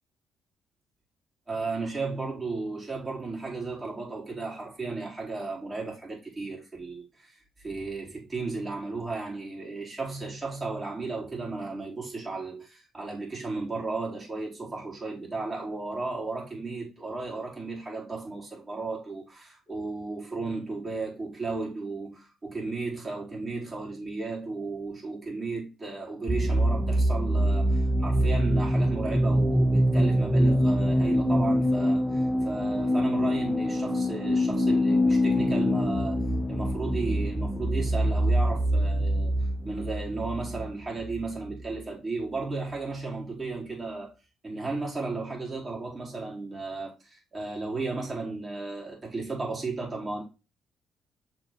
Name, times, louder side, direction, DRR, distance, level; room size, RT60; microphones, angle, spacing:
voice 1, 1.5-44.1 44.4-50.2, right 3 dB, 30° right, 4.5 m, -34 dB
sound 1, 26.3-41.8, equal, 5° right, 1.1 m, -25 dB
6.4 x 4.7 x 4.2 m
cardioid pair, 90°, 0 cm